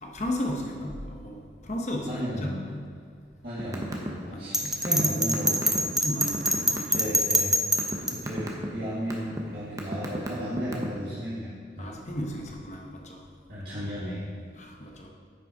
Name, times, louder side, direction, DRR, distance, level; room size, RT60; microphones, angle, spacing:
voice 1, 0.0-2.9 4.3-4.8 6.0-7.1 11.8-13.3 14.6-15.1, left 1 dB, 40° left, 0 dB, 0.9 m, -35 dB
voice 2, 2.1-2.6 3.4-5.8 6.9-7.6 8.1-11.9 13.5-14.2, equal, 60° right, -10 dB, 1.7 m, -34 dB
sound 1, 3.6-4.1 4.4-7.0 7.5-8.0 8.3-8.7 9.1-9.4 9.8-11.1, right 1 dB, 20° right, 0.9 m, -32 dB
Bell, 4.5-8.1, right 1 dB, ahead, 0.4 m, -24 dB
9.2 x 5.6 x 5.0 m, 2.1 s
head